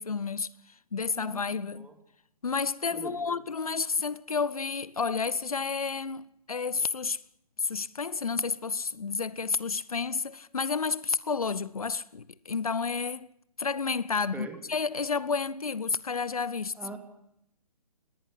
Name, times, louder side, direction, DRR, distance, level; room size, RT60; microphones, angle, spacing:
voice 1, 0.0-1.9 2.4-7.2 7.6-13.3 13.6-16.8, left 5 dB, 70° left, 0.9 m, -31 dB
voice 2, 1.1-2.0 2.9-3.4 14.3-14.6 16.7-17.0, right 4 dB, 5° right, 3.0 m, -43 dB
20.0 x 19.5 x 10.0 m
figure-of-eight pair, 130°, 19 cm